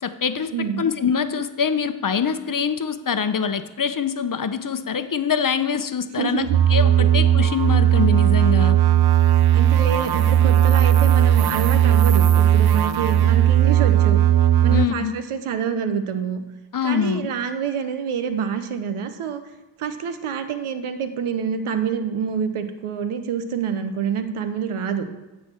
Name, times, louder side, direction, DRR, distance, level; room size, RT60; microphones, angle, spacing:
voice 1, 0.0-8.8 14.7-15.2 16.7-17.3, left 6 dB, 40° left, 11 dB, 0.8 m, -24 dB
voice 2, 0.5-0.8 6.2-6.6 7.0-7.1 9.5-14.2 14.6-16.4 16.8-19.4 19.8-25.0, right 7 dB, 85° right, 9 dB, 1.0 m, -27 dB
sound 1, 6.5-14.9, right 10 dB, 50° right, 0.5 m, -16 dB
9.6 x 4.2 x 7.4 m, 1.1 s
cardioid pair, 45°, 49 cm